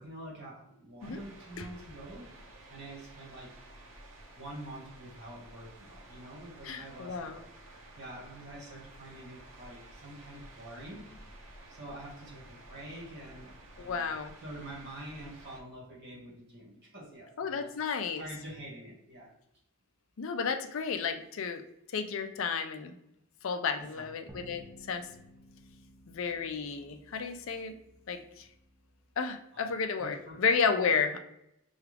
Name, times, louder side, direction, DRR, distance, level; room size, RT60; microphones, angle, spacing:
voice 1, 0.0-3.6 4.3-11.3 11.7-14.1 14.4-17.7 18.2-19.3 23.9-24.3 27.9-28.0 29.5-29.7 30.0-30.4 30.8-30.9, right 1 dB, 50° right, -3 dB, 1.5 m, -47 dB
sound 1, 1.0-15.6, right 1 dB, 65° right, 0.8 m, -53 dB
voice 2, 6.6-7.4 13.8-14.4 17.4-18.2 20.2-21.6 21.9-22.9 23.4-25.1 26.1-27.7 28.1-28.5 29.2-31.2, left 5 dB, 60° left, 7 dB, 0.4 m, -32 dB
sound 2, 24.3-29.1, right 1 dB, 15° right, 0.4 m, -55 dB
5.7 x 2.3 x 3.3 m, 0.82 s
head